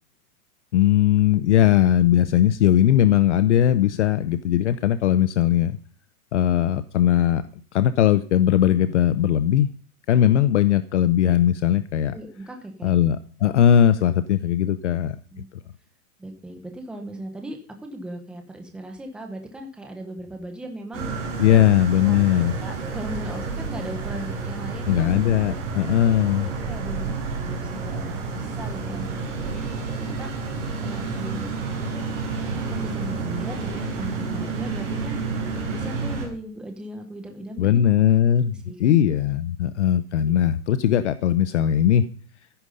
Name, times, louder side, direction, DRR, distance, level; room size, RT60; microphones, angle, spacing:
voice 1, 0.7-5.8 6.3-7.4 7.7-9.7 10.1-12.1 12.8-15.2 21.4-22.5 24.9-26.5 37.6-42.1, left 11 dB, 50° left, 13 dB, 0.8 m, -19 dB
voice 2, 12.1-13.0 15.3-15.5 16.2-21.6 22.1-22.2 22.6-25.2 25.8-25.9 26.7-27.2 27.4-29.1 29.4-29.6 29.9-31.5 32.5-35.2 35.7-37.8 38.7-39.0, right 1 dB, ahead, 3 dB, 0.9 m, -37 dB
sound 1, 20.9-36.3, right 4 dB, 30° right, 5.7 m, -30 dB
13.5 x 10.5 x 5.5 m, 0.43 s
supercardioid pair, 170°, 45 cm